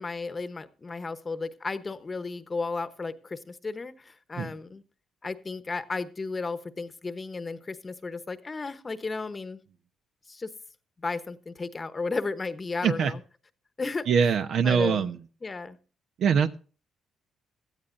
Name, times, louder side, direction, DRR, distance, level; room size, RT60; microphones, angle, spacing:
voice 1, 0.0-4.8 5.2-9.6 10.3-10.5 11.0-13.2 13.8-14.1 14.6-15.1 15.4-15.8, left 3 dB, 30° left, 1.0 m, -34 dB
voice 2, 14.1-15.2 16.2-16.6, right 6 dB, 70° right, 1.0 m, -23 dB
17.5 x 13.0 x 2.6 m
cardioid pair, 90°, 0 cm